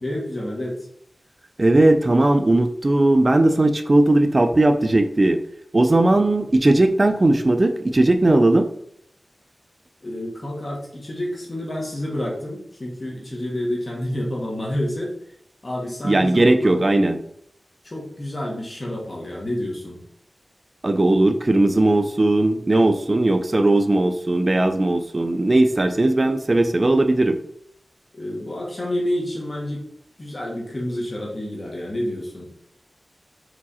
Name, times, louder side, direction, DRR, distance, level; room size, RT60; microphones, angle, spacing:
voice 1, 0.0-0.8 10.0-15.1 15.6-16.8 17.8-20.0 28.2-29.9 30.2-32.5, left 1 dB, 40° left, -3 dB, 1.8 m, -29 dB
voice 2, 1.6-5.4 5.7-8.7 16.0-17.2 20.8-27.4, right 2 dB, 35° right, 8 dB, 0.6 m, -18 dB
5.0 x 4.7 x 4.3 m, 0.69 s
wide cardioid pair, 100°, 0 cm